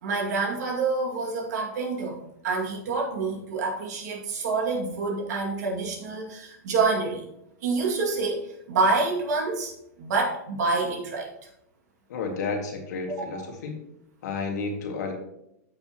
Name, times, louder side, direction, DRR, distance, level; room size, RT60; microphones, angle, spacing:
voice 1, 0.0-2.2 2.4-7.3 7.6-9.7 10.0-11.3 13.1-13.4, right 3 dB, 70° right, -1 dB, 2.4 m, -27 dB
voice 2, 12.1-13.8 14.2-15.1, left 4 dB, 70° left, 2 dB, 2.2 m, -31 dB
13.5 x 5.5 x 3.0 m, 0.80 s
hypercardioid pair, 115°, 9 cm